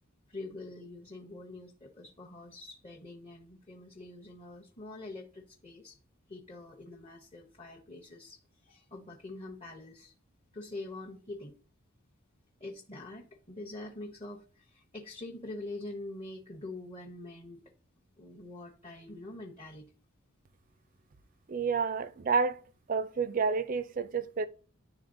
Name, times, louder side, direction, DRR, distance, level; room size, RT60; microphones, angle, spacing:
voice 1, 0.3-6.0 6.3-10.1 10.5-11.5 12.6-17.6 18.2-19.9, left 2 dB, 25° left, 0.8 m, -45 dB
voice 2, 21.5-22.6 22.9-24.5, right 5 dB, 40° right, 0.4 m, -29 dB
11.0 x 3.7 x 2.6 m
head